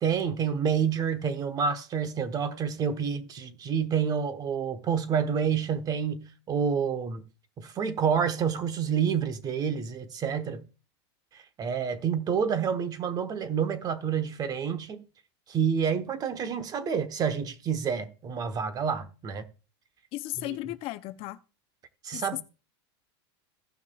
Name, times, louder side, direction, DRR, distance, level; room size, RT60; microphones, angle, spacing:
voice 1, 0.0-7.2 7.6-10.6 11.6-15.0 15.5-19.4 20.4-20.6 22.0-22.4, right 7 dB, 25° right, 1.0 m, -28 dB
voice 2, 20.1-21.4 22.1-22.4, left 17 dB, 45° left, 0.6 m, -35 dB
16.5 x 5.9 x 2.3 m
supercardioid pair, 130°, 14 cm